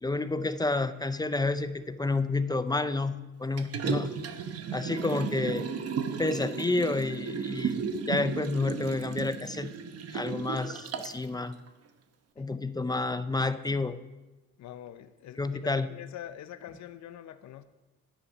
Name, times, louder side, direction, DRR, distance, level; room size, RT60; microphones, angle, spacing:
voice 1, 0.0-4.1 4.7-5.7 6.2-9.8 10.1-11.6 12.4-14.0 15.4-15.9, left 3 dB, 15° left, 0.5 m, -30 dB
Liquid, 3.6-11.2 11.7-11.8, right 6 dB, 55° right, 1.0 m, -34 dB
voice 2, 14.6-17.6, left 11 dB, 65° left, 0.7 m, -45 dB
10.0 x 9.8 x 5.2 m
cardioid pair, 90°, 30 cm